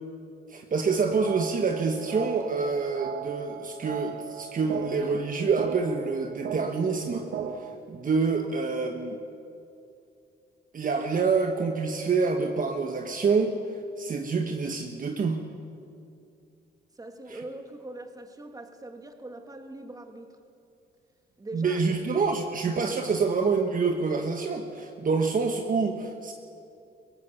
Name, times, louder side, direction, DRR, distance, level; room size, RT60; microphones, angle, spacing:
voice 1, 0.5-7.3 7.6-9.2 10.7-13.5 14.0-15.4 17.3-17.4 21.5-26.3, right 4 dB, 45° right, 4 dB, 1.4 m, -27 dB
sound 1, 0.7-7.7, right 8 dB, 65° right, 1.3 m, -37 dB
voice 2, 16.9-20.4 21.4-21.8, right 1 dB, 20° right, 5 dB, 2.1 m, -42 dB
22.0 x 17.5 x 7.0 m, 2.6 s
cardioid pair, 90°, 20 cm